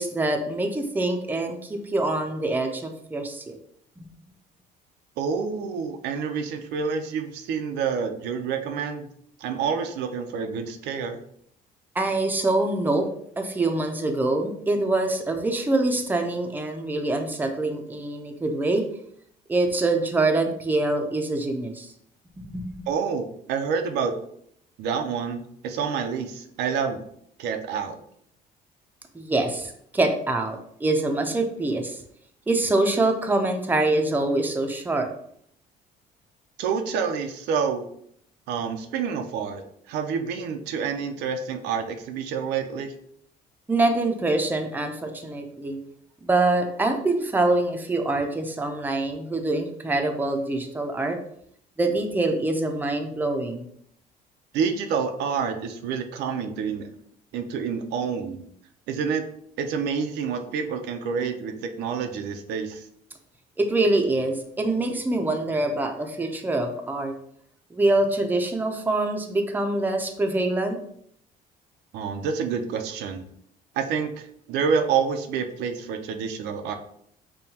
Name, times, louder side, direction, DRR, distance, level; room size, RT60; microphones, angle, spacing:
voice 1, 0.0-3.6 4.0-4.1 11.9-13.1 13.4-18.9 19.5-21.9 22.4-22.6 29.1-32.0 32.5-35.1 43.7-45.8 46.2-51.2 51.8-53.6 63.6-67.1 67.7-70.8, right 2 dB, 10° right, 4 dB, 0.5 m, -25 dB
voice 2, 5.2-9.1 9.4-11.2 22.9-24.1 24.8-27.0 27.4-28.0 36.6-37.8 38.5-42.9 54.5-56.9 57.3-58.4 58.9-59.2 59.6-62.9 71.9-73.2 73.7-76.7, right 6 dB, 85° right, 5 dB, 0.6 m, -28 dB
5.4 x 2.2 x 2.8 m, 0.67 s
cardioid pair, 110°, 17 cm